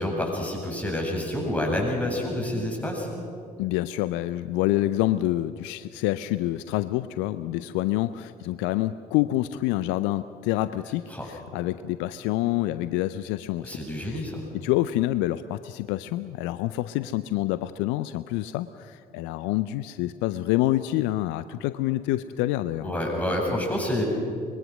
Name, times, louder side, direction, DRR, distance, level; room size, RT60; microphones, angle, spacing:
voice 1, 0.0-3.1 11.1-11.3 13.6-14.4 22.8-24.0, left 1 dB, 5° left, -1 dB, 7.9 m, -28 dB
voice 2, 3.6-14.2 14.5-22.9, left 15 dB, 65° left, 14 dB, 0.6 m, -27 dB
24.5 x 22.0 x 6.3 m, 2.4 s
figure-of-eight pair, 50°, 21 cm